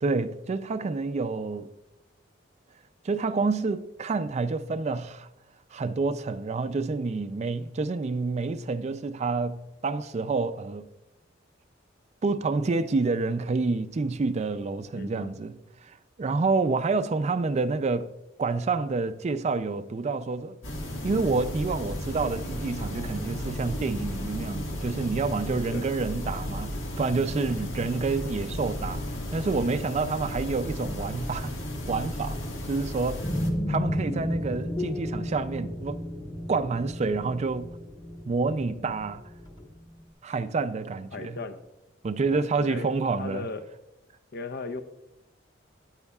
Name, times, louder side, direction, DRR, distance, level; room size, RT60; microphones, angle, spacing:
voice 1, 0.0-1.7 3.0-5.3 5.7-10.9 12.2-18.1 18.4-20.6 21.0-29.0 29.3-31.5 31.9-32.4 32.6-33.3 33.7-36.0 36.5-37.8 38.3-39.2 40.2-41.4 42.0-43.5, right 3 dB, 35° right, 0.4 m, -28 dB
voice 2, 14.9-15.3 25.7-25.9 41.1-41.6 42.3-43.7 44.3-44.8, left 3 dB, 55° left, 0.7 m, -37 dB
sound 1, 20.6-33.5, left 1 dB, 80° left, 1.7 m, -34 dB
sound 2, 33.2-39.8, equal, 25° left, 1.3 m, -33 dB
13.5 x 9.7 x 2.3 m
head